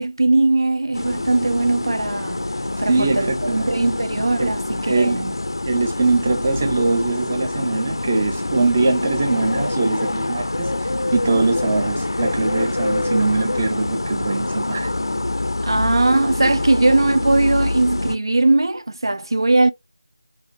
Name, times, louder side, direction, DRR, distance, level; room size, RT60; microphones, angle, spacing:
voice 1, 0.0-2.4 2.8-3.3 3.7-5.3 15.6-19.7, right 2 dB, 80° right, 0.5 m, -19 dB
sound 1, 0.9-18.2, left 2 dB, 85° left, 0.5 m, -25 dB
voice 2, 2.8-3.7 4.4-4.5 4.8-5.3 5.7-14.9, right 3 dB, 15° right, 0.4 m, -22 dB
5.5 x 2.6 x 2.7 m
figure-of-eight pair, 175°, 2 cm